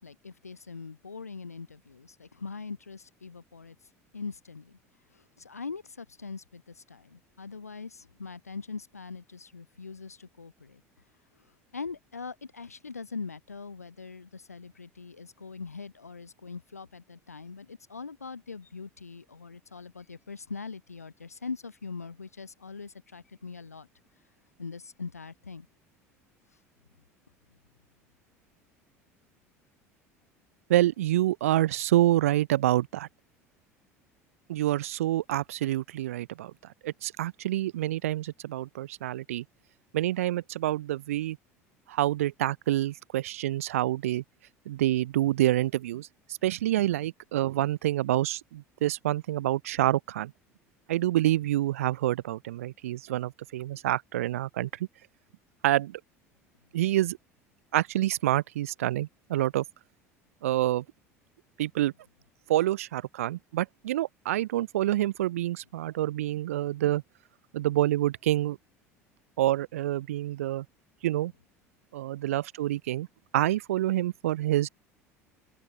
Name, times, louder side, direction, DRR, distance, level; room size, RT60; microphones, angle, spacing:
voice 1, 0.0-3.8 4.1-4.8 5.1-10.8 11.7-23.9 24.6-25.7, left 4 dB, 85° left, 0.5 m, -42 dB
voice 2, 30.7-33.1 34.5-36.5 36.8-39.4 39.9-41.4 41.9-44.2 44.7-50.3 50.9-54.7 55.6-56.0 56.7-57.2 57.7-59.6 60.4-60.8 61.6-61.9 62.5-67.0 67.5-68.6 69.4-70.6 71.0-71.3 71.9-73.1 73.3-74.7, right 14 dB, 65° right, 0.5 m, -27 dB
open air
figure-of-eight pair, 70°, 8 cm